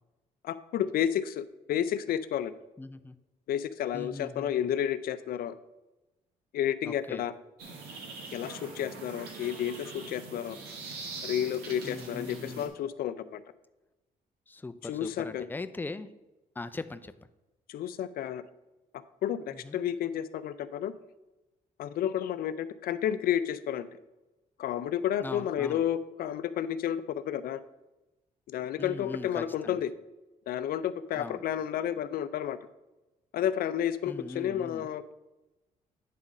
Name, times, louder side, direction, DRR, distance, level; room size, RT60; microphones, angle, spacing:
voice 1, 0.4-2.5 3.5-5.5 6.5-7.3 8.3-10.6 11.2-13.4 14.9-15.5 17.7-18.4 19.2-20.9 21.8-23.9 24.6-27.6 28.5-29.8 30.5-32.6 33.3-35.1, left 10 dB, 70° left, 14 dB, 0.5 m, -31 dB
voice 2, 2.8-3.2 3.9-4.7 6.8-7.3 11.8-12.7 14.5-16.1 16.6-17.1 19.5-19.8 25.2-25.8 28.8-29.8 31.2-31.4 34.1-34.9, left 3 dB, 10° left, 11 dB, 0.5 m, -40 dB
sound 1, 7.6-12.7, right 4 dB, 90° right, 1.4 m, -43 dB
8.3 x 3.7 x 5.3 m, 1.0 s
supercardioid pair, 75°, 16 cm